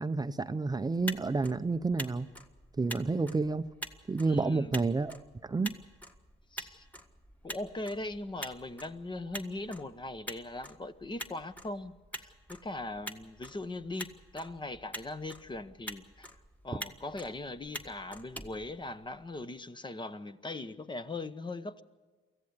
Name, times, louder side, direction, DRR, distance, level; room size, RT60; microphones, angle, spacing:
voice 1, 0.0-2.3 2.8-3.7 4.1-5.2 5.4-5.8, right 3 dB, 20° right, 0.7 m, -30 dB
Motor vehicle (road), 0.9-19.4, equal, 5° left, 1.6 m, -46 dB
voice 2, 4.3-4.7 6.5-6.9 7.4-16.3 16.6-21.8, left 2 dB, 25° left, 1.1 m, -40 dB
24.0 x 15.0 x 8.0 m
cardioid pair, 90°, 20 cm